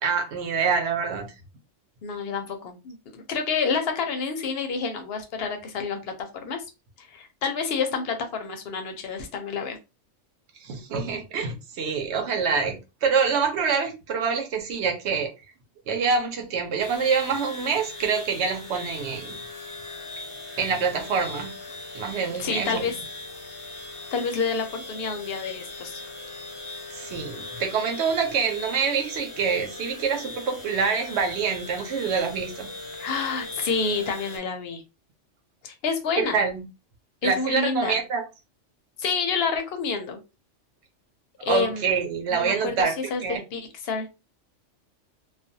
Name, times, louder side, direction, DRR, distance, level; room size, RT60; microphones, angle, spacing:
voice 1, 0.0-1.3 10.6-15.3 15.9-19.4 20.6-21.5 21.9-22.9 26.9-32.7 36.2-36.6 37.2-38.2 41.5-42.9 43.2-43.4, right 5 dB, 65° right, 0.9 m, -26 dB
voice 2, 2.0-6.6 7.0-9.8 22.4-22.9 24.1-26.0 32.9-34.8 35.6-36.4 37.2-38.0 39.0-40.2 41.4-41.9 42.3-44.1, left 5 dB, 60° left, 0.8 m, -28 dB
sound 1, 16.8-34.4, left 2 dB, 30° left, 0.7 m, -39 dB
2.4 x 2.2 x 2.6 m
omnidirectional pair, 1.2 m